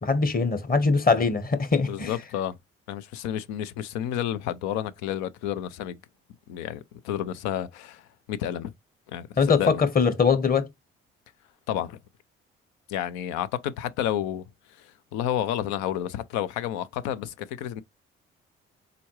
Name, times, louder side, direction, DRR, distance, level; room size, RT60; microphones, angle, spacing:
voice 1, 0.0-2.1 9.4-10.7, left 5 dB, 30° left, 1.2 m, -22 dB
voice 2, 1.9-2.6 2.9-6.0 6.5-8.0 8.3-8.7 9.1-9.8 11.7-12.0 12.9-14.4 14.8-17.8, left 11 dB, 70° left, 0.6 m, -30 dB
4.2 x 3.7 x 3.1 m
hypercardioid pair, 50°, 29 cm